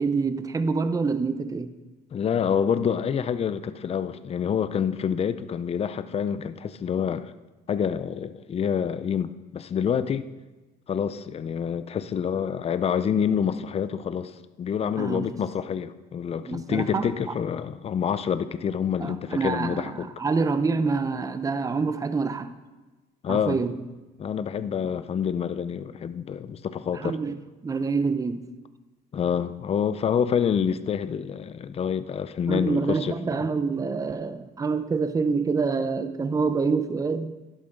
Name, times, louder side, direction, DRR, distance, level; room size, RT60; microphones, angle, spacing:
voice 1, 0.0-1.7 15.0-15.3 16.5-17.1 19.0-22.5 23.3-23.7 26.9-27.4 27.6-28.5 32.5-37.3, right 4 dB, 20° right, 0.6 m, -26 dB
voice 2, 2.1-7.3 7.7-10.3 10.9-14.3 14.6-20.1 23.2-23.6 24.2-27.2 29.1-33.5, left 7 dB, 35° left, 0.6 m, -27 dB
12.0 x 11.0 x 3.8 m
cardioid pair, 110°, 17 cm